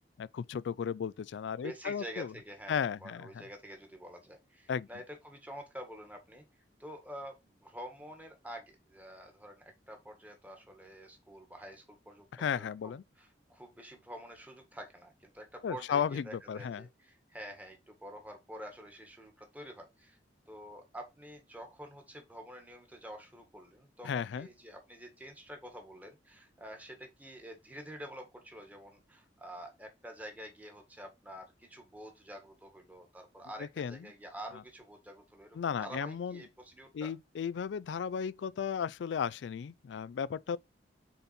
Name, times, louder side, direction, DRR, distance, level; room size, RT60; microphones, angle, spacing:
voice 1, 0.2-2.3 2.7-3.3 4.7-4.9 12.3-13.0 15.6-16.9 24.0-24.5 33.8-34.0 35.6-36.4 36.9-40.6, left 7 dB, 75° left, 0.3 m, -34 dB
voice 2, 1.6-6.4 6.8-20.2 20.5-37.1, equal, 10° right, 1.6 m, -48 dB
6.9 x 4.2 x 4.2 m
head